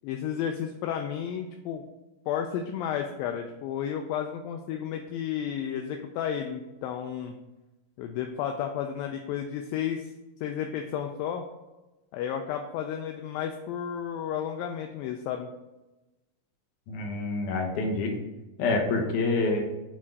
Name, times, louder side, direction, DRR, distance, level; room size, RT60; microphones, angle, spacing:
voice 1, 0.0-1.8 2.3-7.4 8.0-10.1 10.4-11.4 12.1-15.5, left 9 dB, 80° left, 4 dB, 2.2 m, -32 dB
voice 2, 16.9-18.1 18.6-19.7, left 3 dB, 65° left, 1 dB, 2.3 m, -27 dB
7.6 x 3.6 x 4.6 m, 1.0 s
omnidirectional pair, 4.3 m